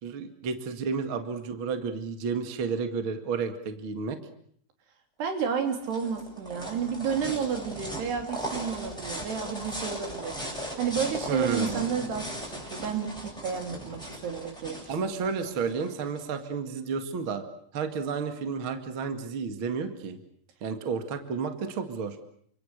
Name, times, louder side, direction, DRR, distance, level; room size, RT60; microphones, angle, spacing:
voice 1, 0.0-4.2 11.3-11.9 14.9-17.4 17.7-20.2 20.6-22.2, right 5 dB, 40° right, 7 dB, 2.0 m, -31 dB
voice 2, 5.2-14.9, right 7 dB, 70° right, 5 dB, 5.1 m, -31 dB
sound 1, 5.4-16.3, equal, ahead, 7.5 m, -38 dB
29.5 x 26.5 x 6.6 m, 0.65 s
omnidirectional pair, 4.9 m